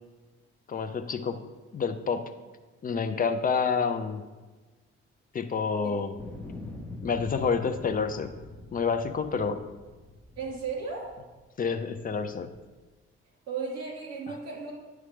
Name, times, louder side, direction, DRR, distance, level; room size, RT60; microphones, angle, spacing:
voice 1, 0.7-1.4 1.7-2.3 2.8-4.2 5.3-6.1 7.0-8.3 8.7-9.6 11.6-12.5 14.3-14.4, left 5 dB, 25° left, 8 dB, 0.6 m, -28 dB
sound 1, 6.2-11.4 12.0-12.7, left 2 dB, 5° left, 1.3 m, -44 dB
voice 2, 10.4-11.1 13.5-14.7, right 5 dB, 50° right, -2 dB, 2.3 m, -35 dB
9.6 x 3.2 x 5.0 m, 1.3 s
figure-of-eight pair, 45°, 33 cm